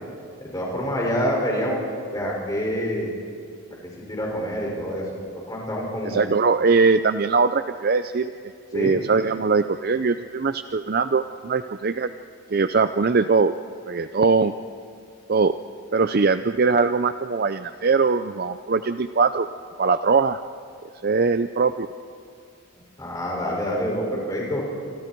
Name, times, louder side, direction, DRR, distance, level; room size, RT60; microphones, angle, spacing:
voice 1, 0.4-1.8 2.1-3.1 4.1-5.0 5.5-6.2 8.7-8.9 23.0-24.6, equal, 15° left, -3 dB, 6.1 m, -26 dB
voice 2, 6.0-8.3 8.7-12.1 12.5-13.6 13.9-14.5 15.3-15.5 15.9-19.5 19.8-20.4 21.0-21.9, right 4 dB, 45° right, 10 dB, 0.5 m, -21 dB
27.5 x 27.0 x 4.6 m, 2.4 s
head